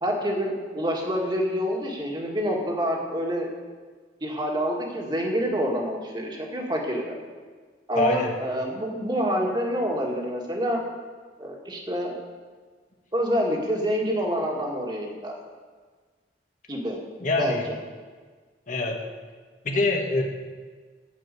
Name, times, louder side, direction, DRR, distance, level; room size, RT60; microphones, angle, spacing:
voice 1, 0.0-3.5 4.2-7.2 7.9-10.8 11.4-12.2 13.1-15.3 16.7-17.0 17.4-17.7, equal, 25° right, -1 dB, 1.9 m, -27 dB
voice 2, 8.0-8.3 17.2-17.6 18.7-19.0 19.6-20.2, left 2 dB, 45° left, 1 dB, 1.8 m, -24 dB
14.0 x 5.4 x 8.3 m, 1.5 s
head